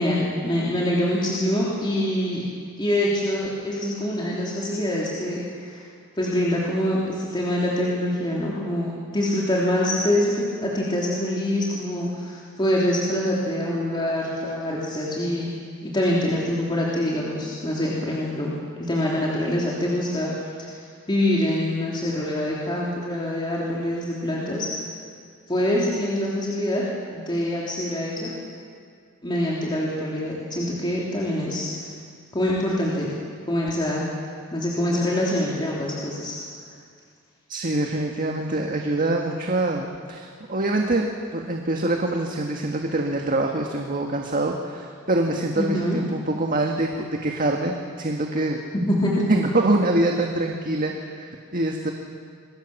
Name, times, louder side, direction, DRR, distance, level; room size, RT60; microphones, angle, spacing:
voice 1, 0.0-2.4 2.8-5.8 6.1-15.5 15.8-20.3 20.6-24.9 25.5-26.8 27.1-28.3 29.2-31.9 32.3-33.1 33.5-34.1 34.5-36.3 45.6-46.0 48.9-49.3, left 1 dB, 25° left, -5 dB, 3.5 m, -25 dB
voice 2, 37.5-48.6 49.3-51.9, right 2 dB, 40° right, 2 dB, 1.7 m, -25 dB
27.0 x 21.5 x 7.2 m, 2.1 s
head